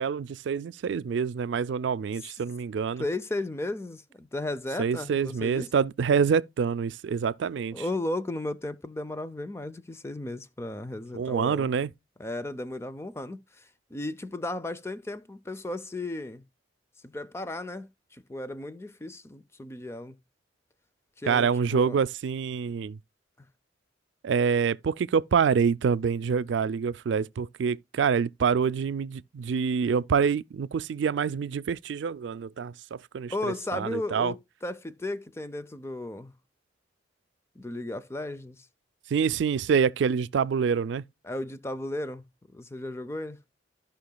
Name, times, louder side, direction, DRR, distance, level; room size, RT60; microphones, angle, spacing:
voice 1, 0.0-3.0 4.8-7.8 11.1-11.9 21.3-23.0 24.2-34.3 39.1-41.0, right 6 dB, 75° right, 0.3 m, -26 dB
voice 2, 3.0-5.7 7.7-11.7 12.2-16.4 17.0-20.2 21.2-22.0 23.4-23.5 33.3-36.3 37.6-38.7 41.2-42.2 42.5-43.4, left 2 dB, 15° left, 0.4 m, -35 dB
14.5 x 5.7 x 2.2 m
head